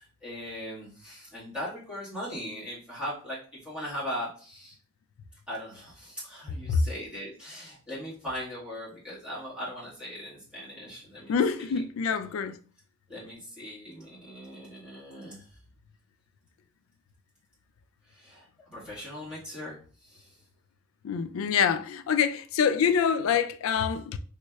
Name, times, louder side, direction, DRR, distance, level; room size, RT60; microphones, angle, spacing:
voice 1, 0.0-4.8 5.5-11.3 11.6-11.8 13.1-15.6 18.1-20.4, equal, 5° right, 1.5 m, -39 dB
voice 2, 11.3-12.6 21.0-24.2, left 6 dB, 80° left, 0.3 m, -26 dB
3.4 x 3.1 x 2.3 m
head